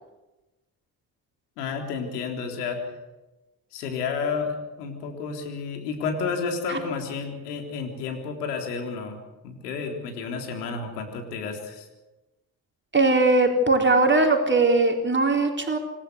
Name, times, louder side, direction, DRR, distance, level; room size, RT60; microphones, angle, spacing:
voice 1, 1.6-2.8 3.7-9.2 9.4-11.9, left 5 dB, 85° left, 4 dB, 3.8 m, -31 dB
voice 2, 12.9-15.8, right 2 dB, 25° right, 2 dB, 4.2 m, -20 dB
27.0 x 14.5 x 8.3 m, 1.1 s
hypercardioid pair, 45°, 46 cm